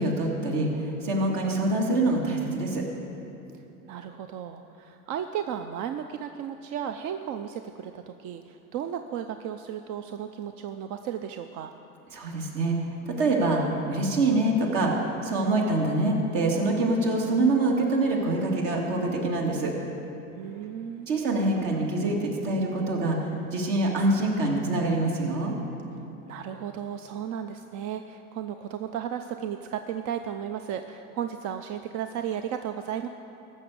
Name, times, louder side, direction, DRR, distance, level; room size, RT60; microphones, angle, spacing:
voice 1, 0.0-2.8 12.1-13.6 13.9-19.7 21.1-25.5, right 2 dB, 60° right, -1 dB, 2.5 m, -25 dB
voice 2, 3.9-11.7 20.3-21.1 26.3-33.1, right 9 dB, 45° right, 8 dB, 0.5 m, -34 dB
15.0 x 6.3 x 6.9 m, 2.8 s
hypercardioid pair, 90°, 43 cm